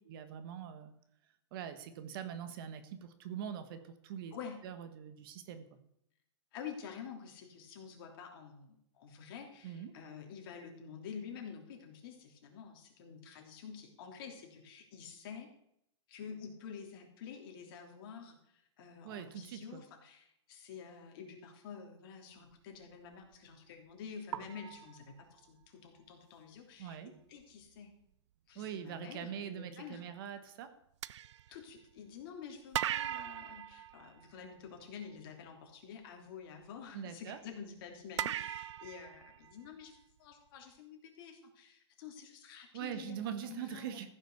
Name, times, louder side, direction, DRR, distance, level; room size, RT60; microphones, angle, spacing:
voice 1, 0.1-0.9 1.5-4.4 4.6-5.7 9.6-9.9 19.0-19.8 26.8-27.1 28.5-30.7 36.9-37.4 42.7-44.1, right 9 dB, 50° right, 10 dB, 1.4 m, -43 dB
voice 2, 6.5-15.5 16.1-27.9 28.5-30.0 31.5-43.2 43.4-44.1, left 7 dB, 50° left, 2 dB, 3.1 m, -49 dB
sound 1, 23.1-23.4 24.3-25.7 26.9-27.0 27.4-27.6 31.0-32.2 32.7-34.8 38.2-40.0, right 11 dB, 70° right, 0.5 m, -40 dB
14.5 x 6.4 x 6.7 m, 0.75 s
hypercardioid pair, 145°, 15 cm